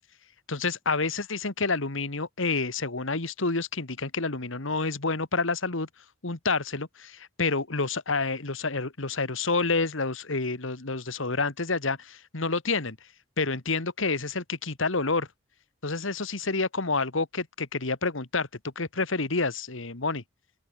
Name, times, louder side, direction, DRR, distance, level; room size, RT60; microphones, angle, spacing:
voice 1, 0.5-5.9 6.2-13.0 13.4-15.3 15.8-18.5 18.8-20.2, left 3 dB, 75° left, 1.9 m, -28 dB
open air
head